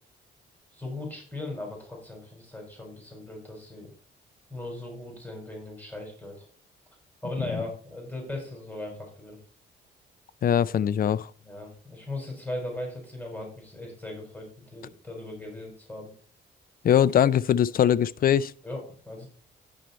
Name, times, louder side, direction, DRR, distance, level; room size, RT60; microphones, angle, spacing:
voice 1, 0.7-3.9 4.5-6.5 7.2-9.4 11.4-16.1 18.6-19.3, left 2 dB, 10° left, 4.4 m, -38 dB
voice 2, 10.4-11.3 16.8-18.5, left 9 dB, 45° left, 0.5 m, -22 dB
10.0 x 6.3 x 4.1 m
cardioid pair, 90°, 20 cm